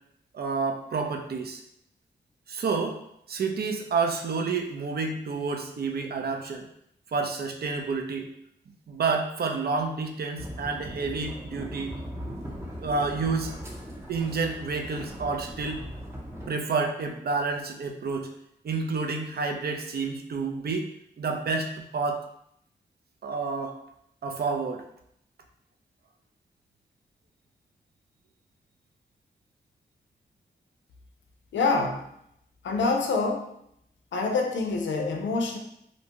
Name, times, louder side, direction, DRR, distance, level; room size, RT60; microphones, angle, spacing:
voice 1, 0.3-1.6 2.5-3.0 3.3-6.7 7.1-8.3 8.9-12.0 12.8-13.5 14.1-15.9 16.5-18.3 18.6-20.9 21.2-22.2 23.2-23.8 24.2-24.8, right 4 dB, 60° right, 4 dB, 0.5 m, -29 dB
sound 1, 10.4-16.5, equal, 15° right, 0.7 m, -39 dB
voice 2, 31.5-32.1 32.6-33.6 34.1-35.6, left 3 dB, 85° left, 2 dB, 0.4 m, -26 dB
2.6 x 2.2 x 2.9 m, 0.74 s
cardioid pair, 45°, 19 cm